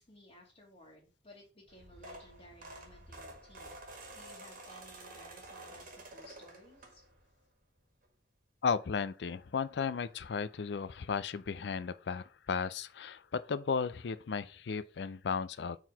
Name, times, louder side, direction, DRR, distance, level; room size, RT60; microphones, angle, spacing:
voice 1, 0.0-7.0, left 1 dB, 35° left, 1.5 m, -58 dB
sound 1, 1.7-7.3 7.8-8.1 9.3-9.4 9.6-9.7 10.1-10.2, right 2 dB, 50° right, 1.5 m, -50 dB
voice 2, 8.6-15.8, left 5 dB, 70° left, 0.4 m, -35 dB
4.6 x 4.0 x 5.2 m
head